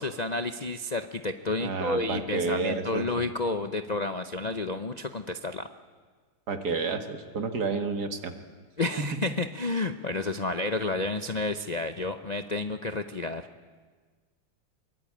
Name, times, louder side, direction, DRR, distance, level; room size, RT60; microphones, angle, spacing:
voice 1, 0.0-5.7 8.8-13.5, left 2 dB, 80° left, 8 dB, 0.3 m, -30 dB
voice 2, 1.6-3.3 6.5-8.3 9.0-9.2, right 4 dB, 55° right, 7 dB, 2.2 m, -30 dB
24.0 x 23.0 x 8.7 m, 1.5 s
omnidirectional pair, 2.1 m